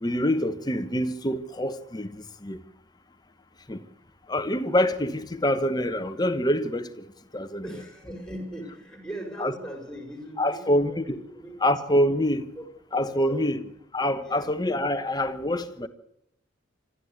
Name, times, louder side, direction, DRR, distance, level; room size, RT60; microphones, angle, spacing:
voice 1, 0.0-2.6 3.7-3.8 4.3-7.0 7.3-7.6 9.4-9.5 10.4-11.2 11.6-12.5 12.9-13.6 13.9-15.9, left 1 dB, 20° left, 1.1 m, -25 dB
voice 2, 7.6-10.7 11.1-11.5 12.6-12.7 13.0-13.6 14.2-14.5, right 1 dB, 5° left, 5.1 m, -39 dB
26.5 x 13.0 x 8.2 m
head